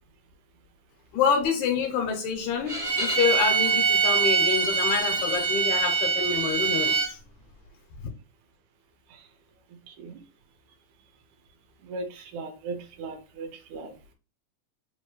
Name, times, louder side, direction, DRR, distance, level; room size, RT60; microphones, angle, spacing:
voice 1, 1.1-7.2, left 6 dB, 80° left, 2.5 m, -27 dB
Bowed string instrument, 2.7-7.1, right 5 dB, 35° right, 0.9 m, -24 dB
voice 2, 9.7-10.2 11.8-13.9, right 3 dB, 85° right, 2.3 m, -38 dB
5.5 x 2.9 x 3.1 m
omnidirectional pair, 3.5 m